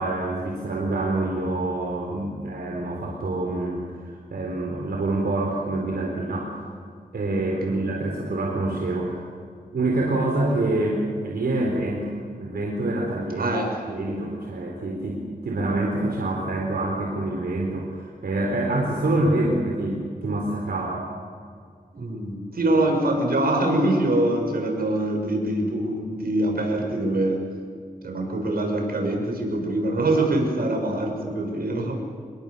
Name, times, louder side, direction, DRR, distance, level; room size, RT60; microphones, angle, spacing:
voice 1, 0.0-6.7 7.1-9.2 9.7-13.5 13.9-21.1, right 2 dB, 90° right, -1 dB, 4.2 m, -26 dB
voice 2, 13.4-14.0 21.9-27.4 28.0-32.0, right 1 dB, 75° right, 2 dB, 7.0 m, -24 dB
28.5 x 21.5 x 6.9 m, 2.2 s
wide cardioid pair, 80°, 16 cm